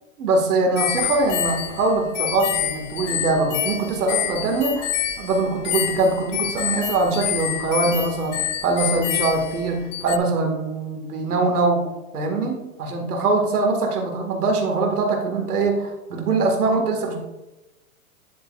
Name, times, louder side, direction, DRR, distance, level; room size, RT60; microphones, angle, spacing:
voice 1, 0.2-4.9 5.2-11.9 12.1-17.2, right 3 dB, 90° right, 2 dB, 2.0 m, -22 dB
sound 1, 0.8-10.2, left 10 dB, 55° left, 0.9 m, -27 dB
9.8 x 8.8 x 2.5 m, 1.0 s
hypercardioid pair, 145°, 44 cm